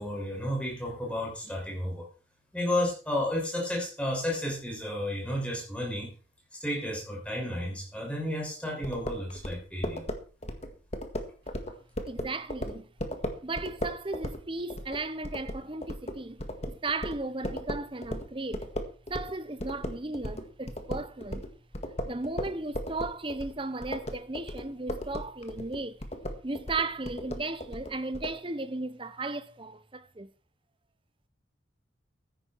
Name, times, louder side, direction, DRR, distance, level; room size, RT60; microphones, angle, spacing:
voice 1, 0.0-2.1 2.5-6.1 6.6-10.0, left 1 dB, 5° left, 6.5 m, -32 dB
sound 1, 8.8-19.3 19.6-28.3, equal, 35° left, 1.7 m, -36 dB
voice 2, 12.1-12.9 13.4-18.7 19.1-21.4 22.0-26.0 26.4-30.3, right 3 dB, 25° right, 0.9 m, -35 dB
14.5 x 10.5 x 4.6 m
head